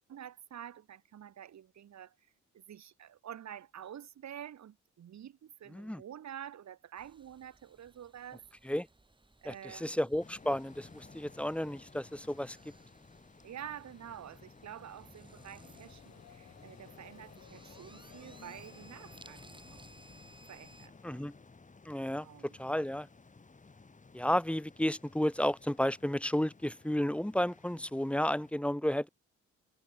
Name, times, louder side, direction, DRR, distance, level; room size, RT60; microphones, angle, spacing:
voice 1, 0.1-2.1 2.5-8.4 9.4-10.1 13.4-19.5 19.7-19.8 20.5-21.2 22.2-22.6, right 10 dB, 65° right, 5.8 m, -48 dB
sound 1, 7.0-20.9, right 2 dB, 15° right, 7.7 m, -61 dB
voice 2, 9.5-12.6 21.0-21.3 21.9-22.3 22.6-23.1 24.1-29.1, left 1 dB, 5° left, 1.0 m, -32 dB
sound 2, 10.2-28.5, left 4 dB, 25° left, 4.1 m, -56 dB
Subway metro underground, 15.4-21.6, left 10 dB, 65° left, 5.5 m, -60 dB
cardioid pair, 90°, 30 cm